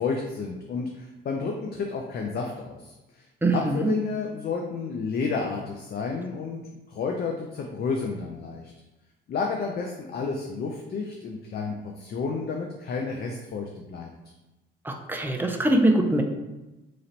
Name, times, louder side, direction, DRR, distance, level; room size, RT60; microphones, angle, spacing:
voice 1, 0.0-3.3 3.5-6.6 6.9-8.7 9.3-14.1, left 4 dB, 50° left, 1 dB, 0.5 m, -31 dB
voice 2, 3.4-3.9 14.8-16.2, right 1 dB, 10° right, 3 dB, 0.5 m, -23 dB
3.1 x 2.8 x 3.9 m, 1.0 s
cardioid pair, 90°, 20 cm